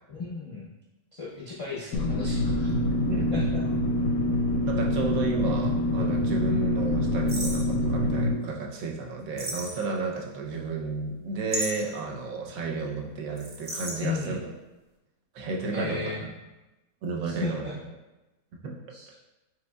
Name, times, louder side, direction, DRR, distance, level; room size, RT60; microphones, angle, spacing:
voice 1, 0.1-0.7 1.1-2.7 3.3-3.6 14.0-14.4 15.7-16.2 17.2-17.7 18.9-19.1, left 4 dB, 50° left, -6 dB, 0.3 m, -34 dB
sound 1, 1.7-1.8 2.7-5.4 5.6-5.7 7.3-7.7 9.4-10.2 11.5-12.0 13.4-14.0, right 1 dB, 35° right, 0.4 m, -35 dB
sound 2, 1.9-8.3, left 1 dB, 80° left, 1.0 m, -26 dB
voice 2, 4.7-14.4 15.3-16.3 17.0-17.6 18.5-18.8, right 3 dB, 75° right, 0 dB, 1.1 m, -32 dB
5.1 x 3.9 x 2.2 m, 1.0 s
omnidirectional pair, 1.5 m